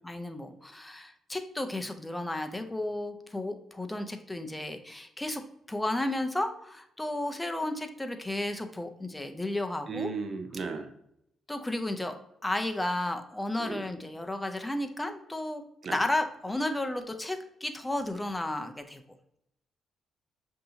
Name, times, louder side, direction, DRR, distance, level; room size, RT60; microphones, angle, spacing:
voice 1, 0.0-5.4 5.7-10.1 11.5-12.1 12.4-15.6 15.9-19.0, left 1 dB, 10° left, 6 dB, 0.5 m, -33 dB
voice 2, 9.9-10.9 13.6-13.8 15.8-16.0, right 5 dB, 45° right, 7 dB, 0.6 m, -35 dB
6.6 x 2.7 x 2.8 m, 0.77 s
cardioid pair, 90°, 0 cm